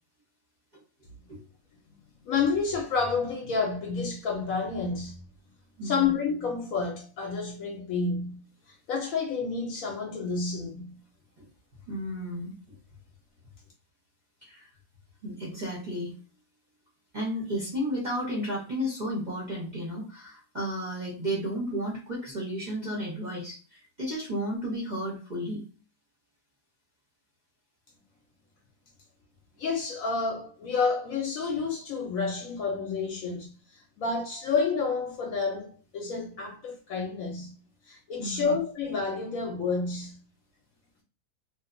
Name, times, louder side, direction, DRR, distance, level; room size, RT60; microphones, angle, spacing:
voice 1, 2.3-5.2 5.8-8.4 8.9-11.0 29.6-37.5 37.9-40.2, left 5 dB, 70° left, 0.9 m, -29 dB
voice 2, 5.8-6.1 11.9-12.5 14.4-14.7 15.2-16.1 17.1-25.6 38.2-38.5, equal, 40° right, 0.7 m, -33 dB
2.7 x 2.1 x 2.5 m
omnidirectional pair, 1.8 m